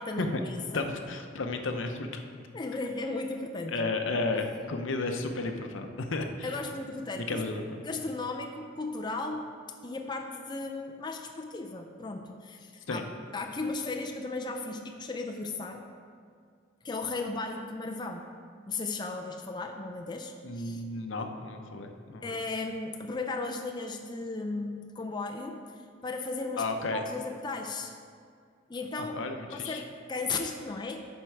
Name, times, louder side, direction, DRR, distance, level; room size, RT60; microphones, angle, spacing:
voice 1, 0.0-0.9 2.5-3.9 6.4-7.4 7.8-9.5 9.8-13.0 13.3-15.9 16.8-18.3 18.7-20.8 21.2-21.3 22.2-27.9 28.7-29.2 29.5-31.1, left 3 dB, 25° left, 4 dB, 0.4 m, -36 dB
voice 2, 0.7-2.1 3.7-6.6 7.1-7.8 12.9-13.0 20.4-22.4 26.6-27.0 29.0-29.8, left 3 dB, 75° left, 5 dB, 0.7 m, -33 dB
11.0 x 4.5 x 4.6 m, 2.2 s
head